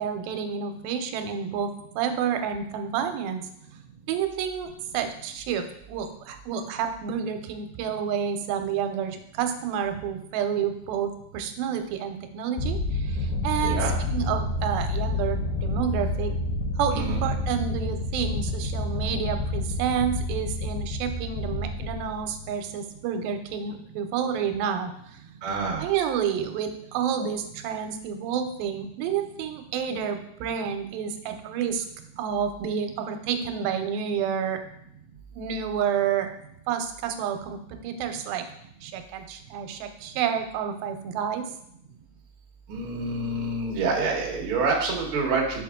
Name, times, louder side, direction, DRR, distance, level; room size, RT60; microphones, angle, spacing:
voice 1, 0.0-3.5 4.1-16.3 16.8-25.2 25.8-31.9 32.2-34.6 35.3-36.3 36.7-38.5 38.8-41.5, right 8 dB, 90° right, 7 dB, 2.4 m, -29 dB
sound 1, 12.6-22.7, left 2 dB, 90° left, 2.7 m, -29 dB
voice 2, 13.6-13.9 16.9-17.2 25.4-25.8 42.7-45.6, right 3 dB, 55° right, -2 dB, 1.5 m, -27 dB
6.3 x 5.1 x 3.6 m, 0.72 s
omnidirectional pair, 4.1 m